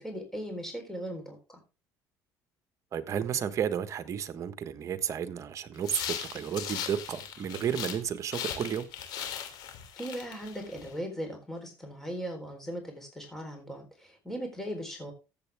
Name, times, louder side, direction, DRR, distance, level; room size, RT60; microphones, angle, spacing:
voice 1, 0.0-1.6 10.0-15.1, equal, 5° left, 4.0 m, -38 dB
voice 2, 2.9-8.9, right 8 dB, 45° right, 1.4 m, -32 dB
sound 1, 5.8-8.0 8.3-10.9, left 9 dB, 75° left, 3.2 m, -38 dB
14.5 x 8.3 x 3.6 m
cardioid pair, 115°, 7 cm